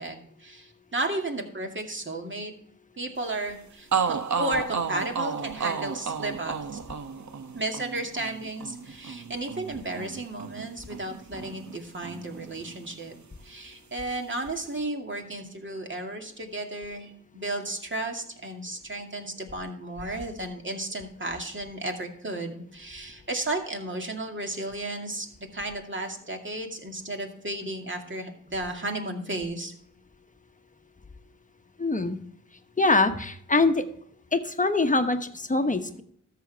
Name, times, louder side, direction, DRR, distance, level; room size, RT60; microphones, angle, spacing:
voice 1, 0.0-2.5 3.0-6.8 7.5-13.1 13.4-25.3 25.5-29.7, right 2 dB, 35° right, 2 dB, 2.3 m, -33 dB
sound 1, 3.5-3.6 3.9-11.8 12.0-13.2, right 6 dB, 60° right, 0.9 m, -32 dB
voice 2, 31.8-32.2 32.8-33.8 34.3-36.0, left 3 dB, 25° left, 8 dB, 1.1 m, -23 dB
13.5 x 6.9 x 3.4 m, 0.67 s
cardioid pair, 65°, 32 cm